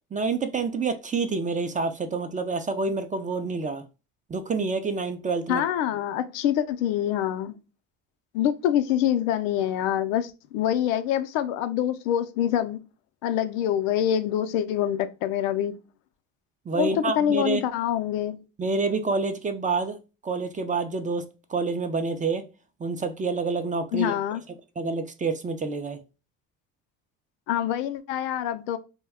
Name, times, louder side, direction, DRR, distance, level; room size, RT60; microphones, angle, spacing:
voice 1, 0.1-3.8 4.3-5.6 16.7-17.6 18.6-20.0 20.2-22.4 22.8-24.1 24.8-26.0, right 4 dB, 20° right, 0.4 m, -28 dB
voice 2, 5.5-7.6 8.3-12.8 13.2-15.8 16.7-18.4 23.9-24.4 27.5-28.8, left 10 dB, 90° left, 0.5 m, -25 dB
2.3 x 2.1 x 3.4 m
supercardioid pair, 75°, 38 cm